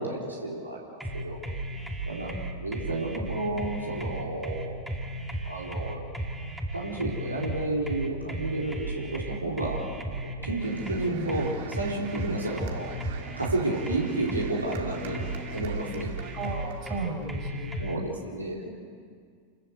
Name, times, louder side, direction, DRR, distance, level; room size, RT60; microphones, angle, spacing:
voice 1, 0.0-1.4 2.1-2.3 2.6-4.8 5.4-6.0 6.7-9.8 10.2-12.9 13.4-16.1 17.8-18.7, right 2 dB, 80° right, -3 dB, 3.9 m, -31 dB
sound 1, 1.0-18.0, right 1 dB, 5° right, 2.7 m, -35 dB
sound 2, 10.6-17.3, right 6 dB, 50° right, 2.6 m, -43 dB
voice 2, 16.3-17.8, right 3 dB, 35° right, 1 dB, 5.9 m, -35 dB
29.0 x 15.0 x 8.1 m, 2.1 s
figure-of-eight pair, 90°, 0 cm